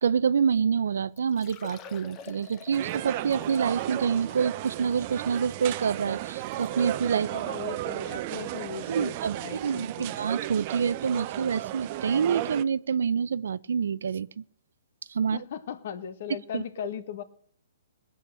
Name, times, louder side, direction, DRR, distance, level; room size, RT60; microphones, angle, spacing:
voice 1, 0.0-7.3 8.9-14.4 15.1-15.4 16.5-16.6, right 6 dB, 75° right, 0.5 m, -27 dB
Liquid, 0.7-0.8 1.2-7.0 7.7-7.8 8.3-8.4 10.0-10.1 10.3-10.4, left 6 dB, 20° left, 1.0 m, -49 dB
sound 1, 2.7-12.6, right 15 dB, 35° right, 0.6 m, -34 dB
voice 2, 7.2-10.3 15.2-17.2, left 8 dB, 50° left, 1.3 m, -38 dB
18.5 x 8.5 x 6.7 m
hypercardioid pair, 160°, 0 cm